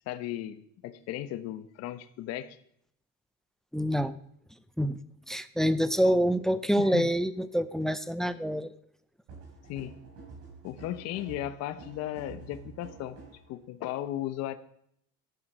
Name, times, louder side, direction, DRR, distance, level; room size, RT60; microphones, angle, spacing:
voice 1, 0.1-2.6 6.0-6.1 6.8-7.1 9.7-10.0 10.6-13.2 13.5-14.5, left 12 dB, 55° left, 10 dB, 1.1 m, -36 dB
voice 2, 3.7-4.2 4.8-5.0 5.3-8.7, equal, ahead, 13 dB, 0.5 m, -26 dB
sound 1, 9.3-13.5, right 4 dB, 50° right, 6.0 m, -48 dB
14.5 x 11.0 x 6.2 m, 0.69 s
cardioid pair, 165°, 30 cm